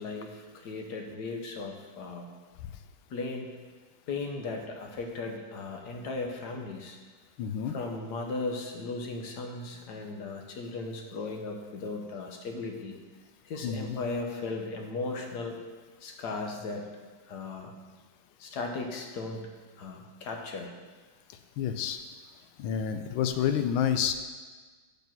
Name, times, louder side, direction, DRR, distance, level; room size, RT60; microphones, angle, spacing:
voice 1, 0.0-2.3 3.1-3.6 4.1-7.0 7.6-13.0 13.4-15.6 16.0-16.9 17.3-17.7 18.4-19.5 19.8-20.7, left 3 dB, 60° left, 3 dB, 1.4 m, -36 dB
voice 2, 7.4-7.7 13.6-14.0 21.6-22.0 22.6-24.1, left 8 dB, 85° left, 9 dB, 1.4 m, -29 dB
7.1 x 6.0 x 5.9 m, 1.4 s
omnidirectional pair, 2.2 m